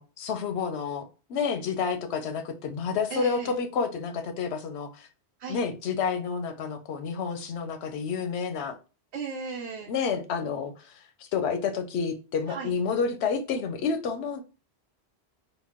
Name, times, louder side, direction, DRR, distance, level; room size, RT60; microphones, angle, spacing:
voice 1, 0.0-5.1 5.5-8.8 9.9-14.4, left 5 dB, 90° left, 0.9 m, -30 dB
voice 2, 3.1-3.5 5.4-5.6 9.1-9.9 12.5-12.7, right 5 dB, 90° right, 0.9 m, -35 dB
4.0 x 2.2 x 3.5 m
omnidirectional pair, 1.1 m